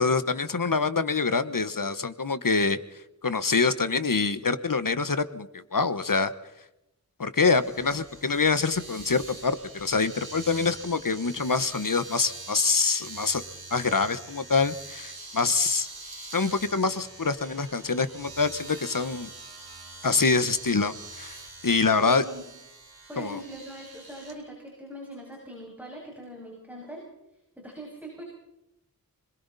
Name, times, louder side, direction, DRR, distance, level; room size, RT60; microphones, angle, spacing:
voice 1, 0.0-2.8 3.2-6.3 7.2-13.4 13.7-15.9 16.3-19.3 20.0-22.2 23.2-23.4, left 4 dB, 65° left, 12 dB, 1.3 m, -25 dB
Domestic sounds home sounds, 7.5-24.4, right 3 dB, 80° right, 4.4 m, -44 dB
voice 2, 22.0-22.4 23.1-27.0 27.6-28.2, equal, 5° right, -2 dB, 6.9 m, -41 dB
30.0 x 21.5 x 4.2 m, 0.89 s
wide cardioid pair, 60°, 36 cm